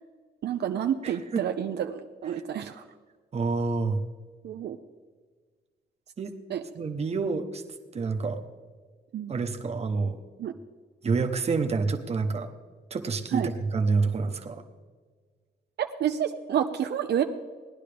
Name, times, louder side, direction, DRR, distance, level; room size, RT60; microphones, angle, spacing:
voice 1, 0.4-2.8 4.4-4.8 6.5-6.6 9.1-9.3 10.4-10.5 13.3-13.5 15.8-17.2, right 9 dB, 70° right, 5 dB, 0.5 m, -29 dB
voice 2, 1.0-1.4 3.3-4.0 6.2-6.3 6.7-7.6 7.9-8.4 9.3-10.2 11.0-12.5 12.9-14.6, right 4 dB, 35° right, 4 dB, 0.9 m, -28 dB
18.5 x 11.5 x 3.4 m, 1.5 s
wide cardioid pair, 180°, 18 cm